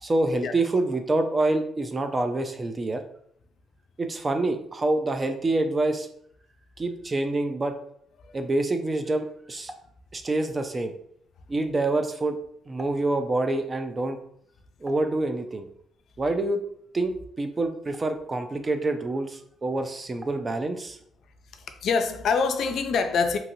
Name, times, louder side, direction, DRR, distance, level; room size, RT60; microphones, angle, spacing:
voice 1, 0.0-3.0 4.0-6.1 6.8-7.7 8.3-9.7 10.1-10.9 11.5-12.4 12.7-14.2 14.8-15.7 16.2-16.6 16.9-21.0, right 2 dB, 30° right, 0.4 m, -26 dB
voice 2, 21.5-23.4, left 5 dB, 70° left, 0.3 m, -25 dB
2.8 x 2.8 x 2.6 m
cardioid pair, 90°, 0 cm